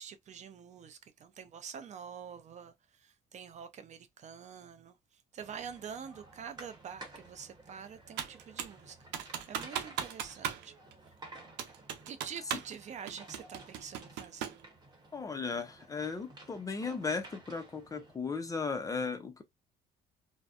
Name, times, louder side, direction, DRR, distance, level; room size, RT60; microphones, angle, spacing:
voice 1, 0.0-10.7 12.1-14.5, right 7 dB, 45° right, 0.5 m, -47 dB
sound 1, 5.4-18.2, right 2 dB, 25° right, 1.1 m, -54 dB
Computer keyboard, 8.2-8.8 9.1-10.7 10.9-11.0 11.6-12.8 13.1-14.6, right 9 dB, 90° right, 0.6 m, -38 dB
voice 2, 15.1-19.4, left 4 dB, 20° left, 0.4 m, -36 dB
2.6 x 2.1 x 2.4 m
cardioid pair, 110°, 17 cm